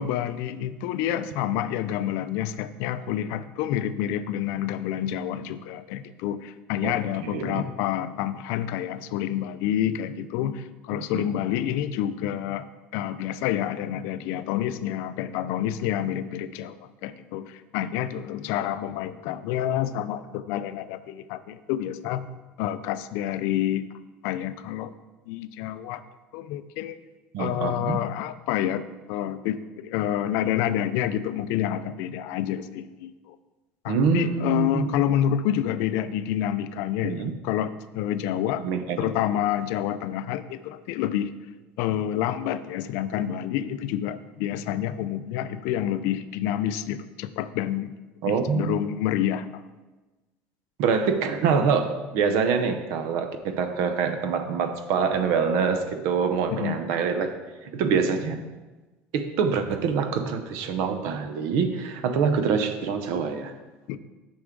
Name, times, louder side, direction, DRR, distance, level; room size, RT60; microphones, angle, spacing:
voice 1, 0.0-12.7 12.9-22.3 22.6-23.8 24.2-24.9 25.3-26.0 26.3-27.0 27.4-33.4 33.8-38.6 39.0-41.3 41.8-47.9 48.3-49.6 56.5-56.8 63.9-64.0, left 11 dB, 65° left, 13 dB, 0.4 m, -28 dB
voice 2, 7.2-7.6 11.1-11.3 27.3-28.0 33.9-34.9 37.0-37.3 38.6-39.1 48.2-48.8 50.8-57.4 57.6-58.4 59.1-63.5, right 6 dB, 60° right, 8 dB, 0.6 m, -25 dB
8.1 x 6.1 x 3.7 m, 1.2 s
cardioid pair, 175°, 5 cm